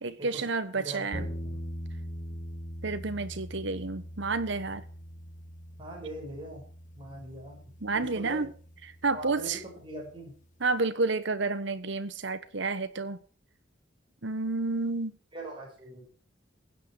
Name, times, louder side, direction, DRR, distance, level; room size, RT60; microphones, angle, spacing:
voice 1, 0.0-1.3 2.8-4.8 7.8-8.5 9.0-9.6 10.6-13.2 14.2-15.1, right 3 dB, 65° right, 1.2 m, -30 dB
voice 2, 0.7-1.6 5.8-6.7 6.9-7.6 7.9-8.5 9.1-10.4 15.3-16.1, right 1 dB, 25° right, 5.9 m, -41 dB
sound 1, 1.1-10.0, equal, 40° left, 2.2 m, -42 dB
16.5 x 10.5 x 4.8 m
head